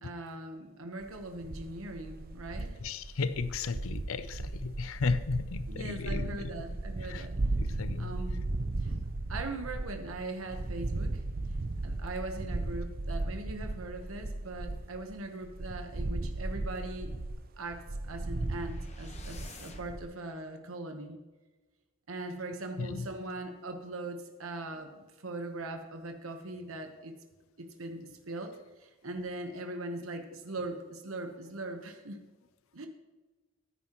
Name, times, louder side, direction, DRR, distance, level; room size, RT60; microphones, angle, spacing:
voice 1, 0.0-2.8 5.7-7.4 8.0-8.4 8.8-8.9 9.3-11.2 11.8-17.2 17.6-21.2 22.1-27.1 27.6-32.2 32.7-32.9, right 2 dB, 90° right, 1.1 m, -40 dB
sound 1, 1.0-15.2 15.4-20.1, right 2 dB, 45° right, 0.6 m, -36 dB
voice 2, 2.8-6.5 7.0-7.3 7.6-8.1 22.8-23.1, left 4 dB, 90° left, 0.5 m, -34 dB
sound 2, 17.9-20.1, left 4 dB, 30° left, 1.1 m, -52 dB
14.0 x 9.7 x 3.0 m
head